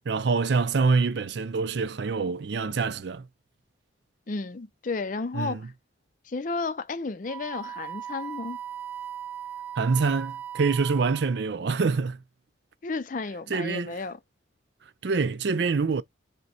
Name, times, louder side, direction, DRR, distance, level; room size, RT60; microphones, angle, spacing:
voice 1, 0.1-3.3 5.3-5.6 9.8-12.2 13.5-13.9 15.0-16.0, right 4 dB, 60° right, 0.4 m, -25 dB
voice 2, 4.3-5.7 6.3-8.6 12.8-14.2, left 3 dB, 40° left, 0.5 m, -32 dB
Wind instrument woodwind instrument, 7.3-11.4, right 9 dB, 10° right, 0.7 m, -38 dB
5.2 x 2.2 x 4.2 m
head